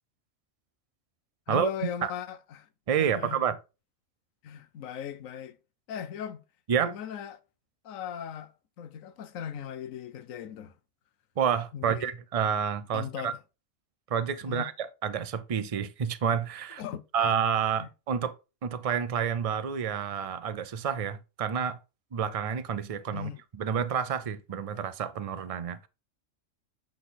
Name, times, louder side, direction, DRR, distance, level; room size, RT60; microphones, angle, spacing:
voice 1, 1.5-2.7 3.0-3.4 4.4-5.6 5.9-6.4 6.8-7.4 7.8-10.7 11.7-12.1 12.9-13.4 14.5-14.7 16.8-17.3 17.8-17.9 23.1-23.4, left 9 dB, 85° left, 1.1 m, -38 dB
voice 2, 2.9-3.6 6.7-7.0 11.4-13.3 14.1-16.8 17.1-18.3 18.6-21.8 22.1-25.9, right 7 dB, 55° right, 0.4 m, -29 dB
8.1 x 3.7 x 3.9 m
omnidirectional pair, 1.4 m